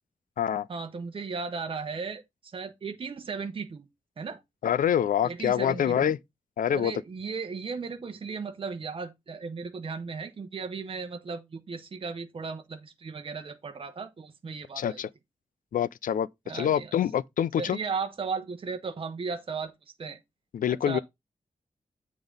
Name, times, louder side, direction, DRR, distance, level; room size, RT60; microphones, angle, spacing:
voice 1, 0.7-3.8 4.2-4.4 5.2-6.1 6.6-15.0 16.5-17.0 17.6-19.7 20.0-20.2 20.7-21.0, right 5 dB, 40° right, 0.8 m, -36 dB
voice 2, 4.6-6.2 6.6-6.9 14.8-15.1 15.7-16.3 16.5-17.8 20.5-21.0, left 9 dB, 85° left, 0.4 m, -26 dB
8.0 x 3.7 x 5.1 m
wide cardioid pair, 165°, 14 cm